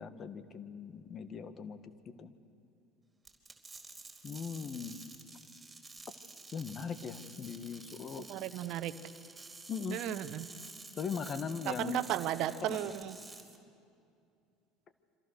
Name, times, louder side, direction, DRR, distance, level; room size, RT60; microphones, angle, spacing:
voice 1, 0.0-1.8 2.1-2.3 4.2-5.0 6.5-8.3 9.7-10.0 11.0-12.0 12.6-12.9, left 6 dB, 40° left, 11 dB, 1.7 m, -39 dB
sound 1, 3.2-13.6, right 3 dB, 10° right, 4.4 m, -51 dB
voice 2, 8.3-8.9 9.9-10.4 11.7-13.1, right 12 dB, 60° right, 13 dB, 1.1 m, -34 dB
27.0 x 26.0 x 6.6 m, 2.5 s
hypercardioid pair, 75°, 0 cm